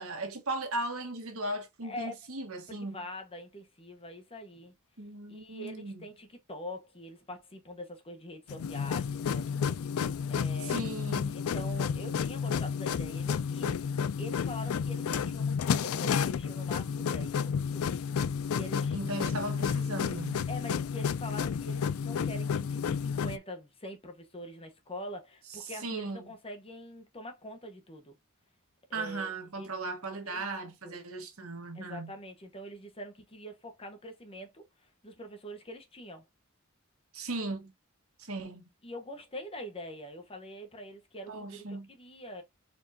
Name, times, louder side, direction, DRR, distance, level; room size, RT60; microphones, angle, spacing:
voice 1, 0.0-3.0 5.0-6.1 10.6-11.4 18.9-20.5 25.6-26.3 28.9-32.1 37.1-37.7 38.2-38.7 41.3-41.9, right 2 dB, 75° right, 1.5 m, -37 dB
voice 2, 1.8-2.2 2.7-4.7 5.3-10.9 11.3-19.0 20.5-28.2 28.9-29.7 30.2-30.5 30.8-31.0 31.7-36.3 38.8-42.4, equal, 25° left, 1.1 m, -44 dB
sound 1, 8.5-23.4, left 6 dB, 75° left, 0.4 m, -31 dB
4.4 x 3.6 x 2.8 m
head